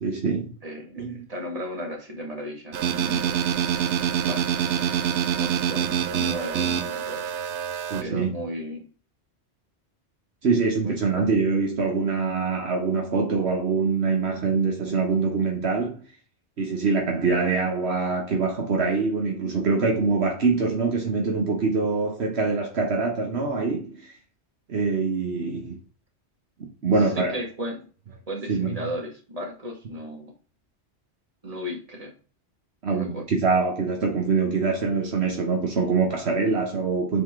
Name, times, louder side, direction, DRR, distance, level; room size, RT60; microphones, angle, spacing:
voice 1, 0.0-0.5 1.0-1.1 7.9-8.3 10.4-16.0 16.6-24.1 24.7-25.8 26.8-27.3 28.5-28.7 32.8-37.2, right 4 dB, 70° right, 1.3 m, -24 dB
voice 2, 0.6-3.4 4.2-4.5 5.3-7.2 8.0-8.8 10.8-11.3 27.0-27.8 28.3-30.3 31.4-32.1 32.9-33.2, equal, 35° right, 1.9 m, -35 dB
sound 1, 2.7-8.0, right 8 dB, 90° right, 1.0 m, -25 dB
7.2 x 4.3 x 3.6 m
omnidirectional pair, 1.2 m